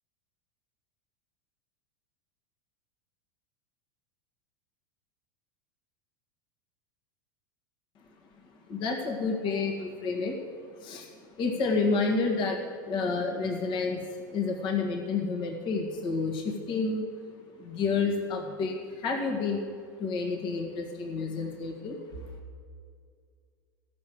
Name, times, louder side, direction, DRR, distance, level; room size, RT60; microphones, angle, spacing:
voice 1, 8.7-10.4 10.8-11.1 11.4-14.0 14.3-17.1 17.6-19.6 20.0-22.3, left 4 dB, 45° left, 2 dB, 1.8 m, -29 dB
13.5 x 6.5 x 7.7 m, 2.2 s
hypercardioid pair, 100°, 11 cm